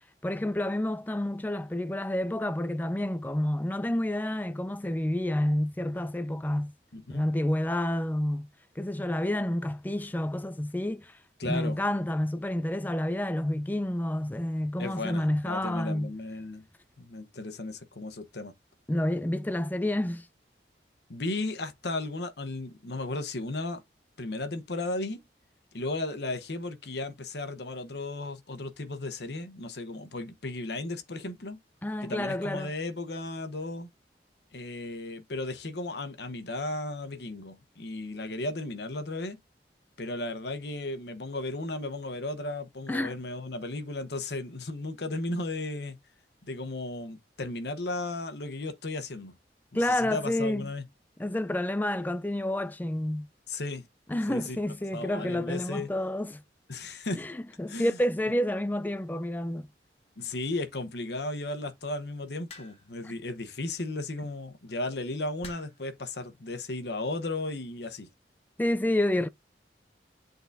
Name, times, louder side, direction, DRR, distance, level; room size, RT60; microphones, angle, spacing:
voice 1, 0.2-6.7 7.1-8.5 8.8-16.1 18.9-20.3 31.8-32.7 42.9-43.1 49.7-50.7 51.2-53.3 54.1-56.4 57.2-59.7 63.0-63.1 68.6-69.3, left 1 dB, 10° left, 0.3 m, -29 dB
voice 2, 6.9-7.2 11.4-11.8 14.8-16.7 17.0-18.5 21.1-23.8 24.2-25.2 25.7-31.6 32.0-33.9 34.5-39.4 40.0-46.0 46.4-49.4 49.7-50.8 53.5-53.9 54.3-54.6 54.9-55.9 56.7-57.2 57.7-58.0 60.2-68.1, left 2 dB, 75° left, 1.0 m, -35 dB
sound 1, 62.5-63.0 64.2-64.5 65.4-65.9 66.9-67.2, left 4 dB, 35° left, 1.2 m, -48 dB
10.5 x 3.9 x 2.6 m
head